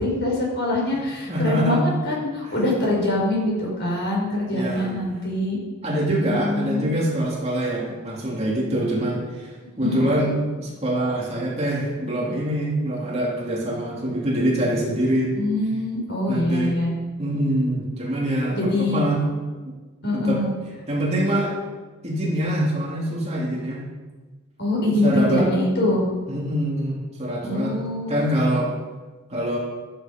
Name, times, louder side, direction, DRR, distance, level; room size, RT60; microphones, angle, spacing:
voice 1, 0.0-5.6 6.2-6.9 9.7-10.1 15.3-16.9 18.5-19.0 20.0-20.5 24.6-26.1 27.4-28.2, left 1 dB, 50° left, -3 dB, 5.6 m, -24 dB
voice 2, 1.3-1.8 2.4-2.5 4.5-4.9 5.8-9.5 9.8-15.3 16.3-16.7 17.2-19.2 20.1-20.4 20.9-21.6 22.0-23.8 25.0-25.5 26.3-27.7 28.1-28.7 29.3-29.6, right 1 dB, 30° right, -4 dB, 3.1 m, -24 dB
13.5 x 13.5 x 5.4 m, 1.3 s
head